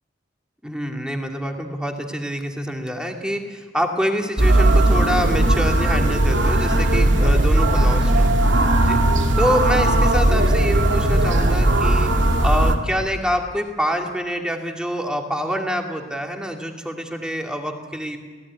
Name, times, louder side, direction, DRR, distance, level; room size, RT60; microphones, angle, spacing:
voice 1, 0.6-8.3 8.8-9.0 9.3-18.2, equal, 5° right, 2 dB, 2.5 m, -26 dB
sound 1, 4.4-12.7, right 1 dB, 75° right, 2.3 m, -17 dB
28.5 x 17.5 x 9.8 m, 1.5 s
head